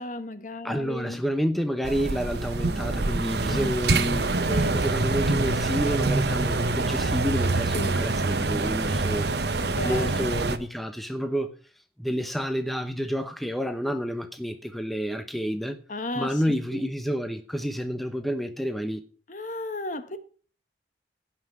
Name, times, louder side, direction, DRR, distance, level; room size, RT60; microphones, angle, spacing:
voice 1, 0.0-1.2 3.5-3.7 4.5-4.8 7.7-8.0 9.6-10.3 15.9-16.4 16.7-16.8 19.3-20.2, left 2 dB, 45° left, 1.3 m, -34 dB
voice 2, 0.6-9.3 9.8-11.5 12.0-15.8 16.1-19.0, equal, ahead, 0.8 m, -29 dB
sound 1, 1.8-10.6, right 3 dB, 65° right, 1.0 m, -25 dB
16.5 x 5.8 x 6.2 m
head